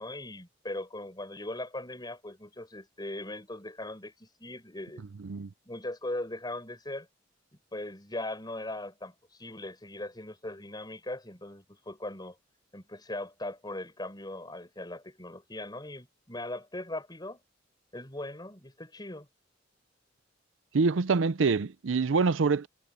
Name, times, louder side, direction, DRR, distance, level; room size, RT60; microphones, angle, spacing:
voice 1, 0.0-5.0 5.7-7.1 7.7-12.4 12.7-17.4 17.9-19.3, left 1 dB, 20° left, 5.9 m, -39 dB
voice 2, 20.7-22.7, right 4 dB, 80° right, 0.6 m, -25 dB
head